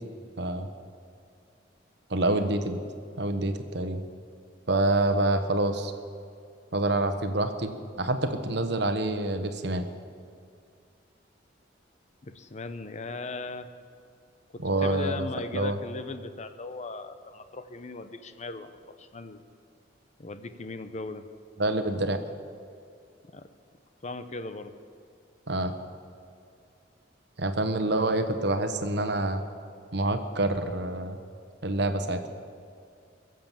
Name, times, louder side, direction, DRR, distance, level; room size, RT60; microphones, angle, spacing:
voice 1, 0.4-0.7 2.1-2.8 3.2-4.0 4.7-5.9 6.7-7.7 8.0-9.9 14.6-15.3 15.5-15.8 21.6-22.2 25.5-25.7 27.4-29.4 29.9-31.2 31.6-32.2, right 2 dB, 65° right, 8 dB, 1.1 m, -27 dB
voice 2, 12.2-13.7 14.5-19.4 20.2-21.2 23.3-23.5 24.0-24.7 32.3-32.5, left 3 dB, 40° left, 10 dB, 0.7 m, -38 dB
22.0 x 7.8 x 7.4 m, 2.3 s
head